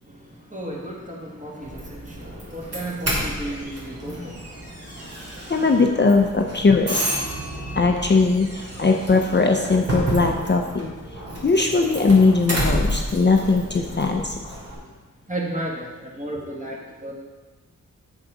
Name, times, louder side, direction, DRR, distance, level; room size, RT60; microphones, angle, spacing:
voice 1, 0.0-5.8 6.5-6.7 7.2-8.4 8.7-9.1 10.2-12.0 13.0-13.3 14.7-14.8 15.3-17.1, right 1 dB, 25° right, -3 dB, 2.0 m, -36 dB
Doorbell, 1.6-14.8, right 1 dB, 50° right, 2.7 m, -30 dB
voice 2, 5.5-7.2 7.8-10.9 11.4-14.3, left 3 dB, 35° left, 3 dB, 0.6 m, -19 dB
7.4 x 6.5 x 4.9 m, 1.3 s
wide cardioid pair, 90°, 32 cm